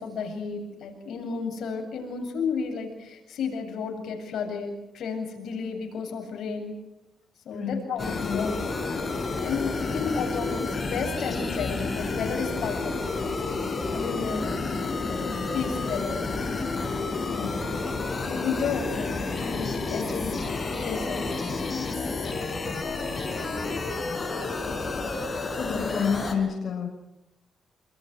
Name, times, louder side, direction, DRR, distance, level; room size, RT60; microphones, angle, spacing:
voice 1, 0.0-6.7 7.4-8.8 9.4-14.5 15.1-15.2 15.5-16.3 17.2-17.6 18.3-21.3, left 5 dB, 75° left, 4 dB, 7.9 m, -33 dB
voice 2, 7.5-7.9 8.2-8.4 17.3-17.5 23.5-23.7 25.6-26.9, left 6 dB, 55° left, 1 dB, 6.8 m, -29 dB
sound 1, 8.0-26.4, left 3 dB, 30° left, 6.5 m, -30 dB
28.5 x 28.0 x 6.4 m, 0.93 s
cardioid pair, 125°, 0 cm